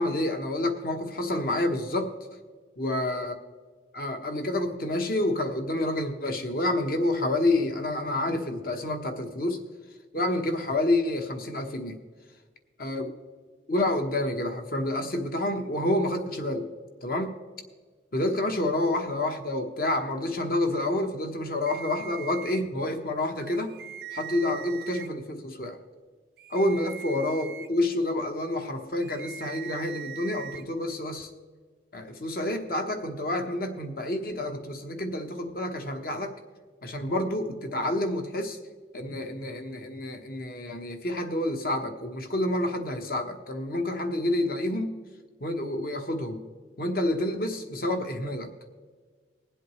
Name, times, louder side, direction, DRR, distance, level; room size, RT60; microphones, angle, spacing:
voice 1, 0.0-2.1 2.8-3.3 3.9-9.6 10.1-12.0 12.8-13.1 13.7-16.7 17.0-17.4 18.1-23.7 24.1-25.8 26.5-31.3 31.9-36.3 36.8-38.6 38.9-44.9 45.4-46.4 46.8-48.5, left 1 dB, 50° left, 5 dB, 1.1 m, -28 dB
sound 1, 21.7-22.6 23.4-25.1 26.4-27.7 29.0-30.6, right 9 dB, 55° right, 0.4 m, -41 dB
20.5 x 7.9 x 3.2 m, 1.5 s
head